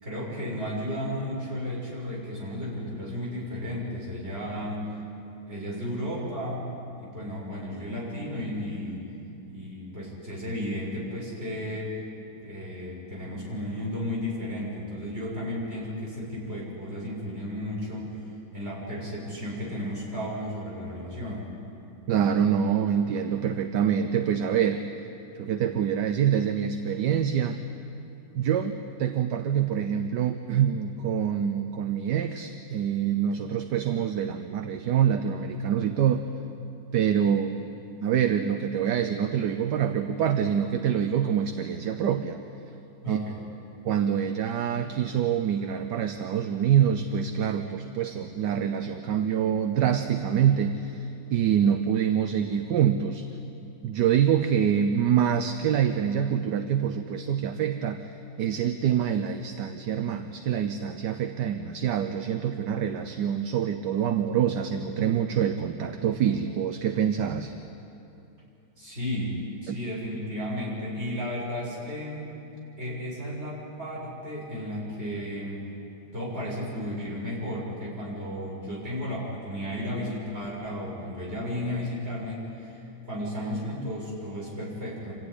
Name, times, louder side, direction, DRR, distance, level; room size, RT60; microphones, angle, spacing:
voice 1, 0.0-4.9 5.5-6.7 7.0-9.0 9.4-11.9 12.4-18.1 18.5-21.5 43.0-43.4 68.8-72.3 72.8-75.6 76.1-85.1, equal, 35° right, -5 dB, 6.6 m, -33 dB
voice 2, 22.1-24.8 25.4-27.6 28.3-36.3 36.9-37.7 38.0-42.4 43.1-43.2 43.8-53.3 53.8-58.0 58.4-67.5 69.7-69.8, right 8 dB, 70° right, 8 dB, 1.4 m, -25 dB
26.5 x 15.0 x 9.9 m, 2.8 s
omnidirectional pair, 2.0 m